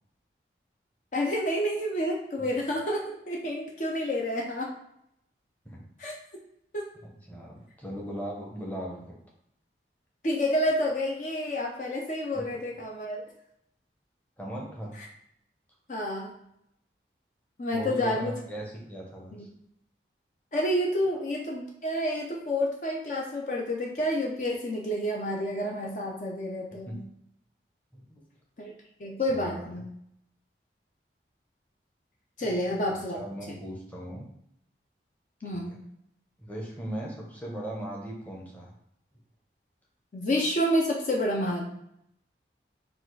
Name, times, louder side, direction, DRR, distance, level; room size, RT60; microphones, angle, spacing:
voice 1, 1.1-4.7 6.0-6.1 6.7-6.9 10.2-13.2 15.0-15.1 15.9-16.4 17.6-18.3 19.3-19.4 20.5-27.0 28.6-28.7 29.0-29.9 32.4-33.2 33.5-33.6 35.4-35.7 40.1-41.6, equal, 45° left, -1 dB, 0.6 m, -29 dB
voice 2, 7.0-9.2 14.4-14.9 17.7-19.5 26.8-26.9 27.9-28.2 29.3-29.7 33.1-34.3 35.5-35.6 36.4-38.7, right 1 dB, 10° left, -3 dB, 0.8 m, -38 dB
4.2 x 2.4 x 4.6 m, 0.76 s
head